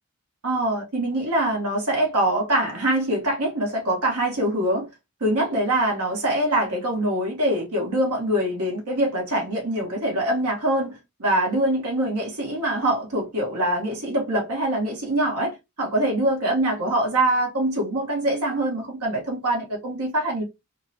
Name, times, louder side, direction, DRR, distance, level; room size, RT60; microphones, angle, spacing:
voice 1, 0.4-4.9 5.2-20.4, right 1 dB, 90° right, 1.3 m, -24 dB
3.6 x 2.2 x 2.8 m
head